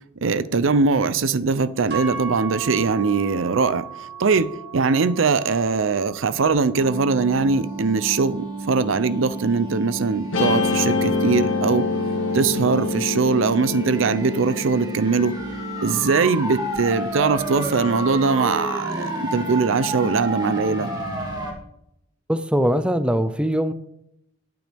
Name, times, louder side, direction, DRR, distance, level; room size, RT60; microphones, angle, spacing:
voice 1, 0.2-3.9 4.2-11.9 12.3-15.4 15.8-20.9, right 4 dB, 75° right, 0.6 m, -21 dB
sound 1, 1.9-10.1, right 7 dB, 55° right, 2.8 m, -38 dB
sound 2, 6.7-21.5, right 2 dB, 20° right, 2.5 m, -31 dB
Guitar, 10.3-16.8, left 4 dB, 75° left, 1.8 m, -26 dB
voice 2, 22.3-23.7, equal, 5° right, 0.5 m, -21 dB
14.0 x 9.3 x 3.5 m
head